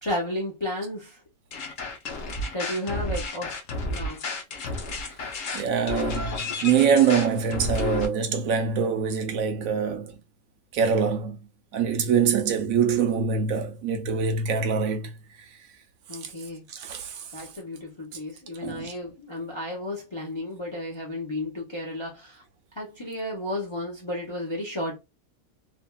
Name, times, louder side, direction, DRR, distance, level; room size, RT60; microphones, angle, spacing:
voice 1, 0.0-1.2 2.5-3.5 3.9-4.2 16.1-16.7 17.3-22.4 22.7-25.0, left 1 dB, 35° left, 0.4 m, -33 dB
sound 1, 1.5-8.1, left 2 dB, 65° left, 1.0 m, -31 dB
voice 2, 5.5-10.1 10.7-11.4 11.7-15.1 16.7-17.2 18.6-18.9, right 6 dB, 75° right, 1.0 m, -24 dB
3.4 x 2.2 x 2.2 m
omnidirectional pair, 1.5 m